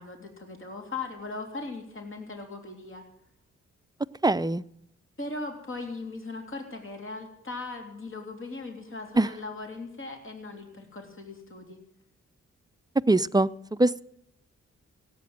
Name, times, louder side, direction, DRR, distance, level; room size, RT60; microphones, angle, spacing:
voice 1, 0.0-3.0 5.2-11.8, left 3 dB, 45° left, 3 dB, 3.3 m, -39 dB
voice 2, 4.2-4.6 9.2-9.3 13.1-13.5 13.8-14.0, right 2 dB, 15° right, 14 dB, 0.5 m, -22 dB
17.0 x 8.6 x 7.7 m, 0.74 s
cardioid pair, 60°, 29 cm